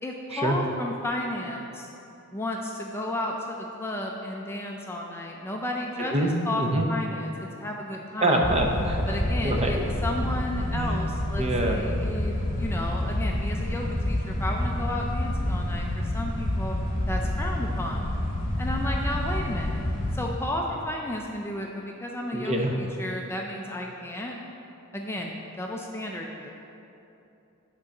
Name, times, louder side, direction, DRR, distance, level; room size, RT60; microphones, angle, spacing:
voice 1, 0.0-1.9 2.3-8.4 9.1-16.8 17.1-18.1 18.6-19.8 20.1-24.4 24.9-26.5, left 1 dB, 10° left, 0 dB, 0.4 m, -33 dB
voice 2, 6.1-6.9 8.2-9.2 9.4-9.7 10.7-11.1 11.4-11.8 22.3-22.8, right 1 dB, 30° right, 1 dB, 0.7 m, -25 dB
sound 1, 8.4-20.3, left 1 dB, 35° left, 1.6 m, -28 dB
9.9 x 3.8 x 5.3 m, 2.9 s
head